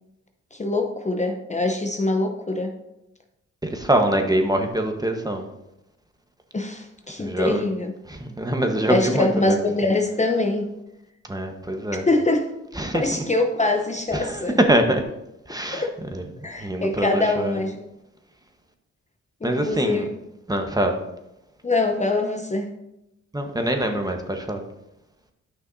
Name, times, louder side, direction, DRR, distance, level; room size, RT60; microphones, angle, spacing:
voice 1, 0.5-2.7 6.5-7.9 8.9-10.7 11.9-12.5 12.9-14.6 15.7-15.9 16.4-17.8 19.4-20.1 21.6-22.7, left 2 dB, 25° left, 4 dB, 0.7 m, -24 dB
voice 2, 3.6-5.4 7.2-7.6 8.1-9.6 11.3-12.0 12.8-13.2 14.1-15.0 15.5-15.8 16.6-17.5 19.4-20.1 20.5-21.0 23.3-24.6, right 1 dB, 15° right, 4 dB, 1.1 m, -23 dB
9.5 x 5.8 x 2.7 m, 0.90 s
supercardioid pair, 50°, 30 cm